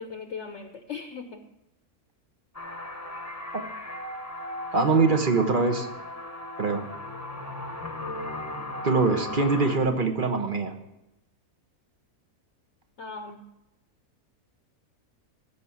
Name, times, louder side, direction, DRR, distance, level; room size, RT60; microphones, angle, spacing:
voice 1, 0.0-1.4 13.0-13.4, left 5 dB, 55° left, 7 dB, 1.1 m, -38 dB
sound 1, 2.5-9.8, left 2 dB, 10° left, 1.0 m, -37 dB
voice 2, 4.7-5.9 6.6-6.8 8.8-10.7, right 4 dB, 40° right, 6 dB, 1.1 m, -23 dB
14.0 x 6.3 x 7.0 m, 0.94 s
omnidirectional pair, 1.6 m